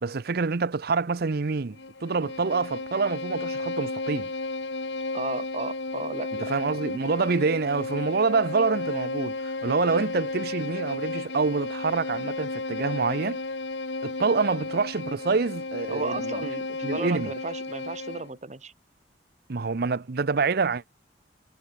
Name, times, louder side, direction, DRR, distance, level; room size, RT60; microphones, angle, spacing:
voice 1, 0.0-4.3 6.4-13.4 14.0-16.5 16.8-17.3 19.5-20.8, right 4 dB, 60° right, 0.7 m, -26 dB
Bowed string instrument, 1.7-18.3, left 3 dB, 80° left, 2.0 m, -33 dB
voice 2, 5.1-6.5 15.9-18.7, right 3 dB, 40° right, 1.7 m, -34 dB
head